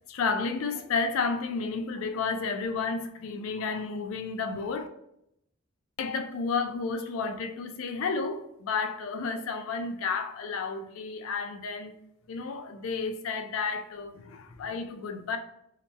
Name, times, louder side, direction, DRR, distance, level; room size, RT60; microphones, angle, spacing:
voice 1, 0.1-4.9 6.0-11.9 12.3-15.4, left 4 dB, 70° left, 0.4 m, -31 dB
2.8 x 2.2 x 4.1 m
head